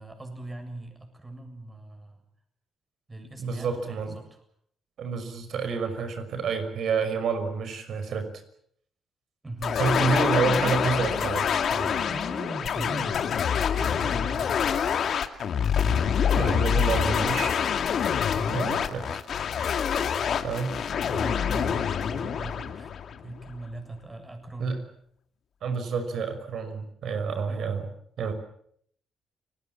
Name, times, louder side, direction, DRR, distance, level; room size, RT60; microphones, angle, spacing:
voice 1, 0.0-2.2 3.1-4.3 9.4-9.8 12.1-14.8 16.6-17.0 18.3-18.7 21.0-22.9 23.2-24.8 27.5-27.8, right 2 dB, 20° right, 6 dB, 7.5 m, -39 dB
voice 2, 3.4-4.2 5.0-8.3 9.7-12.1 16.3-17.6 18.5-19.2 20.4-20.8 24.6-24.8 25.6-27.9 28.2-28.3, right 5 dB, 65° right, 9 dB, 5.8 m, -29 dB
sound 1, 9.6-23.5, left 7 dB, 60° left, 2.2 m, -26 dB
30.0 x 20.0 x 7.4 m, 0.67 s
cardioid pair, 90°, 0 cm